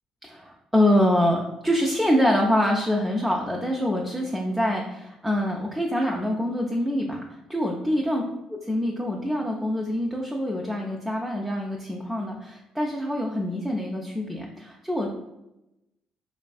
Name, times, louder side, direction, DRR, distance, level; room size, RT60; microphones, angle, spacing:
voice 1, 0.2-8.2 8.5-15.2, equal, 5° right, -1 dB, 0.4 m, -25 dB
2.5 x 2.3 x 2.3 m, 0.91 s
hypercardioid pair, 45°, 2 cm